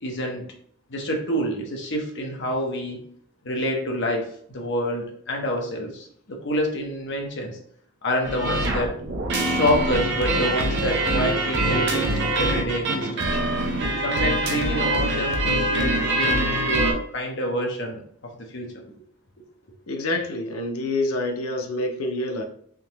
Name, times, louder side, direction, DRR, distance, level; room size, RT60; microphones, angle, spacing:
voice 1, 0.0-0.5 0.9-3.0 3.4-7.6 8.0-9.0 9.4-12.1 12.4-13.3 14.0-18.8, equal, 55° left, 1 dB, 0.8 m, -27 dB
sound 1, 8.2-16.9, right 1 dB, 50° right, 0.6 m, -24 dB
voice 2, 19.9-22.4, left 2 dB, 85° left, 3 dB, 0.6 m, -27 dB
3.6 x 2.8 x 2.9 m, 0.62 s
head